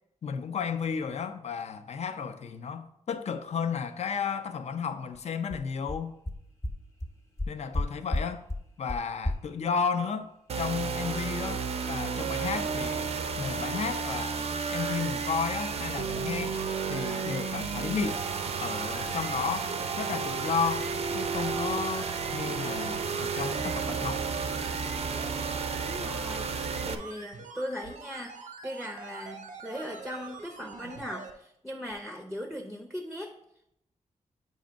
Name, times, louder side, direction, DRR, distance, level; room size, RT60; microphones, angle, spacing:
voice 1, 0.2-6.2 7.5-8.4 8.8-10.3 10.6-11.6 11.9-13.1 13.4-14.4 14.7-16.5 16.9-18.2 18.6-24.2, left 6 dB, 55° left, 0.5 m, -33 dB
sound 1, 5.1-5.2 5.5-5.6 5.9-6.0 6.3-6.4 6.6-6.7 7.0-7.1 7.4-7.8 8.1-8.2 8.5-8.6 8.9-9.0 9.2-9.3, left 1 dB, 20° left, 0.9 m, -29 dB
sound 2, 10.5-26.9, right 5 dB, 55° right, 0.5 m, -32 dB
sound 3, 13.4-31.3 31.9-32.0, right 4 dB, 85° right, 0.8 m, -45 dB
voice 2, 25.8-33.3, equal, ahead, 0.6 m, -39 dB
7.8 x 2.6 x 5.1 m
wide cardioid pair, 105°, 13 cm